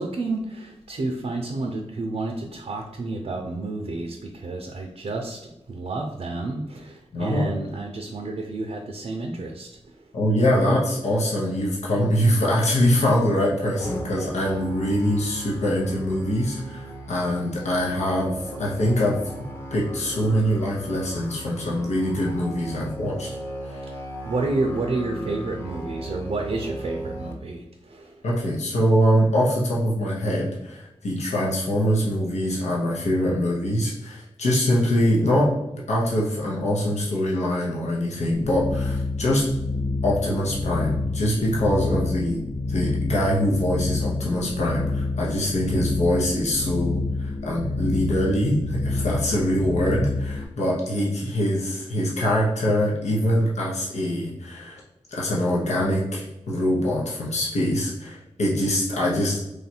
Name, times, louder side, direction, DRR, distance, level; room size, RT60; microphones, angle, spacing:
voice 1, 0.0-5.4 5.7-9.7 24.2-28.2, right 2 dB, 70° right, 2 dB, 0.5 m, -30 dB
voice 2, 7.1-7.5 10.1-23.3 23.7-23.8 28.2-39.5 40.0-42.4 42.7-54.8 55.1-59.4, equal, 90° left, -4 dB, 0.8 m, -23 dB
Musical instrument, 13.8-27.3, right 1 dB, 20° left, 0.8 m, -37 dB
sound 1, 38.3-50.4, left 3 dB, 55° left, 0.7 m, -28 dB
3.2 x 2.4 x 4.2 m, 0.91 s
cardioid pair, 50°, 11 cm